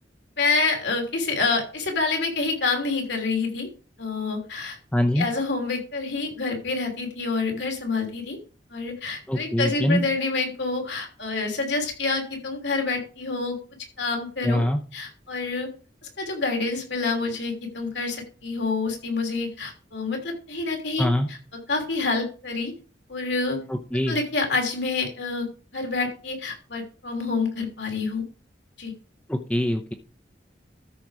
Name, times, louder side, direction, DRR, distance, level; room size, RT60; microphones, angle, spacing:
voice 1, 0.4-3.7 4.0-4.8 5.1-8.4 8.7-13.6 14.0-14.6 14.9-15.7 16.2-21.4 21.7-22.7 23.1-23.6 24.1-25.5 25.7-28.2 28.8-28.9, left 3 dB, 85° left, 2 dB, 3.1 m, -27 dB
voice 2, 4.9-5.3 9.3-10.0 14.4-14.8 21.0-21.3 23.7-24.2 29.3-29.9, left 1 dB, 10° left, 5 dB, 0.7 m, -23 dB
13.0 x 4.9 x 4.7 m, 0.37 s
head